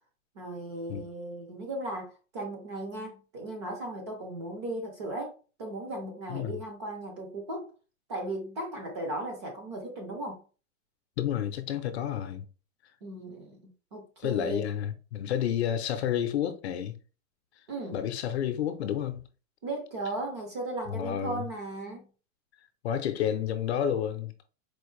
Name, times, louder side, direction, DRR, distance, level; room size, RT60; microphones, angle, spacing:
voice 1, 0.4-7.7 8.1-10.4 13.0-14.7 17.7-18.0 19.6-22.0, right 1 dB, 25° right, 0.5 m, -37 dB
voice 2, 11.2-12.5 14.2-17.0 17.9-19.2 20.9-21.5 22.8-24.3, left 9 dB, 55° left, 0.6 m, -30 dB
4.4 x 2.5 x 3.1 m
supercardioid pair, 175°, 39 cm